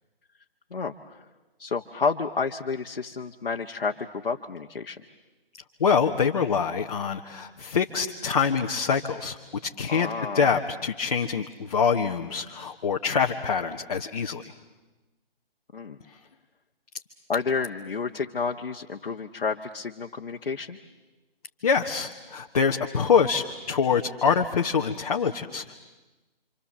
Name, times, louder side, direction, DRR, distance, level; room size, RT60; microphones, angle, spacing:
voice 1, 0.7-1.2 1.6-5.0 9.9-10.6 15.7-16.0 17.3-20.8, left 5 dB, 65° left, 2 dB, 1.4 m, -30 dB
voice 2, 5.8-9.4 9.8-10.1 10.3-14.4 21.6-25.7, left 6 dB, 40° left, 2 dB, 1.2 m, -25 dB
28.0 x 26.5 x 7.4 m, 1.1 s
figure-of-eight pair, 155°, 30 cm